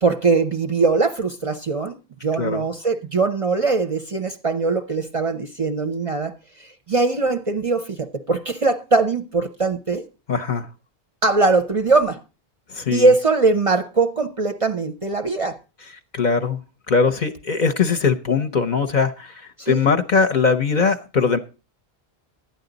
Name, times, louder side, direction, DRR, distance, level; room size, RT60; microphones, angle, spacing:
voice 1, 0.0-10.0 11.2-12.2 12.9-15.6 19.6-19.9, right 3 dB, 40° right, 0.6 m, -21 dB
voice 2, 10.3-10.7 12.7-13.1 16.1-16.6 16.9-21.4, left 5 dB, 50° left, 0.7 m, -21 dB
11.5 x 9.5 x 3.9 m
omnidirectional pair, 1.1 m